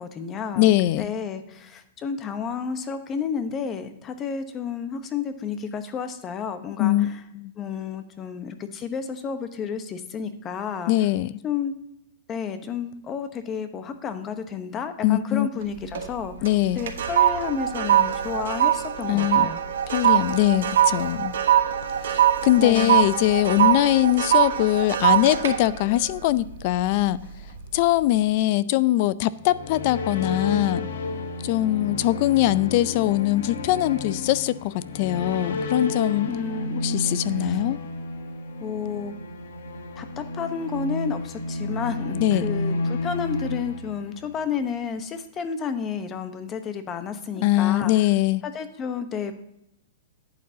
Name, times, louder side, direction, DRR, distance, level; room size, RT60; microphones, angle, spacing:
voice 1, 0.0-0.7 1.0-7.2 7.6-10.9 11.4-11.7 12.3-16.3 16.7-19.6 22.6-23.0 36.3-37.1 37.4-37.6 38.6-39.1 40.0-47.9 48.4-49.4, left 6 dB, 20° left, 0.9 m, -31 dB
voice 2, 0.6-1.1 6.8-7.5 10.9-11.4 15.0-15.5 16.4-16.8 19.1-19.5 19.9-21.3 22.0-27.2 27.7-30.8 31.4-36.3 36.8-37.8 42.2-42.5 47.4-48.4, left 15 dB, 45° left, 0.4 m, -22 dB
sound 1, 15.6-16.1 16.5-27.0 27.5-27.8, right 10 dB, 85° right, 1.4 m, -22 dB
sound 2, 29.3-44.5, left 2 dB, 85° left, 1.1 m, -31 dB
11.0 x 8.6 x 2.8 m
hypercardioid pair, 150°, 0 cm